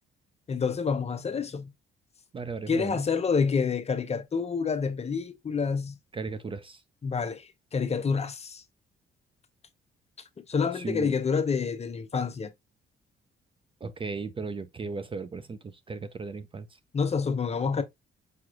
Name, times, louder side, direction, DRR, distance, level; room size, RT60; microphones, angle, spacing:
voice 1, 0.5-1.7 2.7-6.0 7.0-8.6 10.5-12.5 16.9-17.8, left 5 dB, 30° left, 0.6 m, -28 dB
voice 2, 2.3-3.0 6.1-6.8 10.8-11.1 13.8-16.7, right 4 dB, 25° right, 0.4 m, -36 dB
4.9 x 3.0 x 2.3 m
cardioid pair, 90°, 20 cm